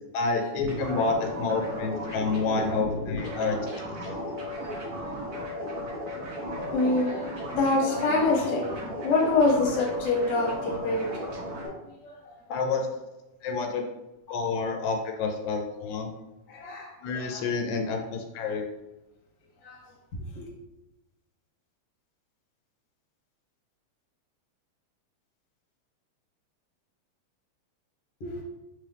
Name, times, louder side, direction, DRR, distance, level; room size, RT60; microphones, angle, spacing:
voice 1, 0.1-3.8 12.5-12.9 13.4-13.9 14.3-16.1 17.0-18.6, left 4 dB, 80° left, 3 dB, 1.9 m, -29 dB
sound 1, 0.6-11.7, left 1 dB, 65° right, 0.9 m, -35 dB
voice 2, 6.7-11.1 12.0-12.3 16.5-17.5 19.6-19.8 20.3-20.4 28.2-28.4, left 2 dB, 55° left, -3 dB, 1.2 m, -26 dB
4.7 x 3.2 x 3.4 m, 1.0 s
omnidirectional pair, 3.3 m